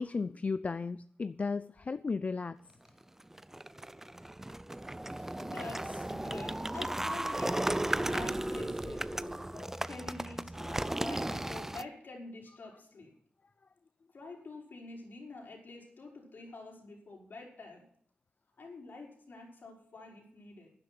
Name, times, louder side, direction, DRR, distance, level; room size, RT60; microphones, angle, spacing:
voice 1, 0.0-2.6 9.5-9.8, left 4 dB, 40° left, 15 dB, 0.4 m, -35 dB
sound 1, 3.2-11.8, right 1 dB, 10° right, 0.5 m, -35 dB
voice 2, 5.4-7.6 8.0-9.4 9.8-13.1 14.1-17.8 18.6-20.7, left 3 dB, 60° left, -1 dB, 5.5 m, -47 dB
12.5 x 10.5 x 6.1 m, 0.66 s
wide cardioid pair, 85°, 4 cm